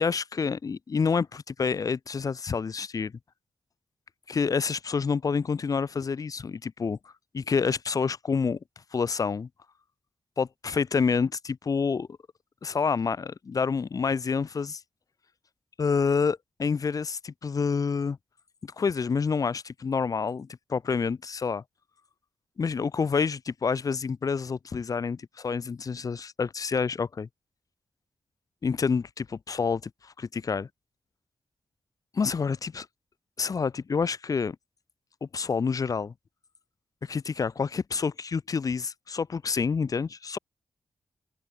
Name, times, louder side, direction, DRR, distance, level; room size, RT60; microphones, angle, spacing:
voice 1, 0.0-3.1 4.3-7.0 7.3-8.6 8.9-9.5 10.4-12.1 12.6-14.8 15.8-18.2 18.6-21.6 22.6-27.3 28.6-30.7 32.1-32.9 33.4-34.6 35.2-36.1 37.0-40.4, left 5 dB, 45° left, 1.6 m, -28 dB
open air
wide cardioid pair, 170°, 9 cm